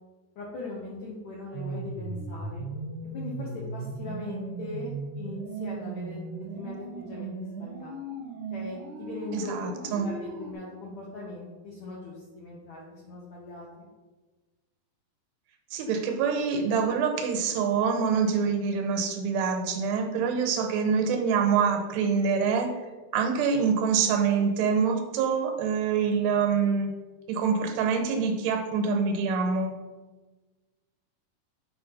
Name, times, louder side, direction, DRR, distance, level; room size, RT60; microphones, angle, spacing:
voice 1, 0.4-2.7 3.1-8.0 8.5-9.6 9.9-13.9 19.9-20.0, left 3 dB, 70° left, -4 dB, 1.8 m, -40 dB
sound 1, 1.5-10.5, right 3 dB, 70° right, 1.8 m, -37 dB
voice 2, 9.3-10.1 15.7-22.7 23.1-26.9 27.3-29.7, right 6 dB, 85° right, 4 dB, 3.2 m, -25 dB
8.9 x 4.4 x 5.4 m, 1.3 s
omnidirectional pair, 4.7 m